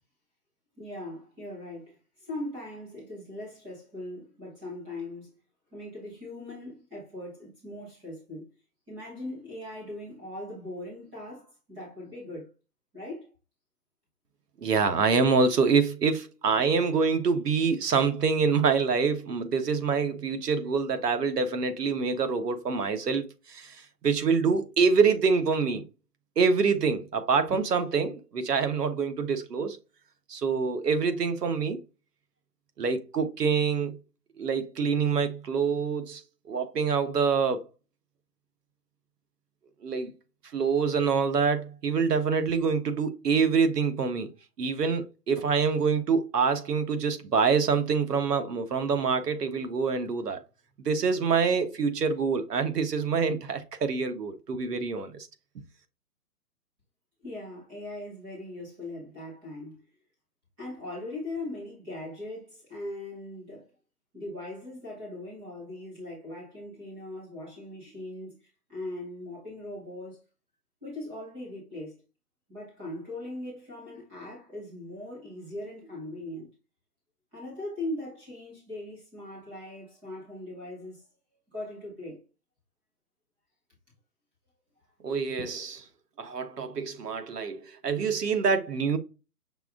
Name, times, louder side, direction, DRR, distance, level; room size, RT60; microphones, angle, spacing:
voice 1, 0.8-5.3 5.7-8.5 8.9-12.5 12.9-13.3 57.2-59.8 60.6-63.7 64.1-68.4 68.7-70.2 70.8-72.0 72.5-76.5 77.3-81.0 81.5-82.2, left 1 dB, 5° right, 0.8 m, -40 dB
voice 2, 14.6-25.8 26.4-29.8 30.3-31.8 32.8-34.0 34.4-37.7 39.8-40.1 40.5-44.3 44.6-50.4 50.8-55.3 85.0-85.8 86.2-89.0, right 5 dB, 85° right, 1.2 m, -26 dB
5.9 x 2.5 x 3.5 m
hypercardioid pair, 170°, 46 cm